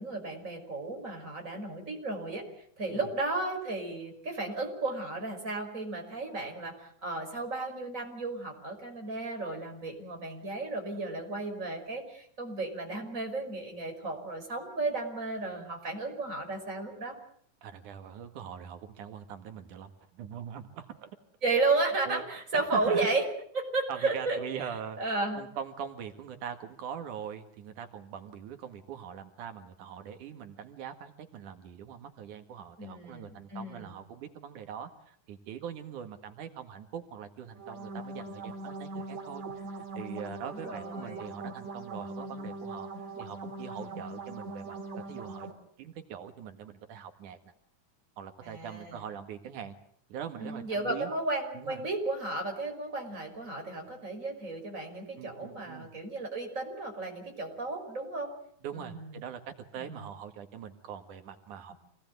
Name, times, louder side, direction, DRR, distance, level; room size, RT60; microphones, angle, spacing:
voice 1, 0.0-2.4 2.8-17.1 21.4-23.2 23.5-24.4 25.0-25.4 32.8-33.9 40.4-41.2 43.8-44.0 48.4-49.0 50.4-58.3 58.7-59.1 59.8-60.0 61.7-61.8, right 3 dB, 25° right, 2 dB, 6.0 m, -33 dB
voice 2, 17.6-19.9 20.2-21.1 22.1-22.2 22.5-23.1 23.9-39.7 39.9-42.9 43.2-44.8 45.1-45.5 45.8-47.5 48.2-49.7 50.1-51.1 51.5-51.8 55.2-55.9 58.6-59.4 59.7-61.7, right 8 dB, 90° right, 7 dB, 3.3 m, -42 dB
sound 1, 37.5-45.5, right 2 dB, 60° right, 4.6 m, -41 dB
27.5 x 19.0 x 9.4 m, 0.64 s
omnidirectional pair, 3.4 m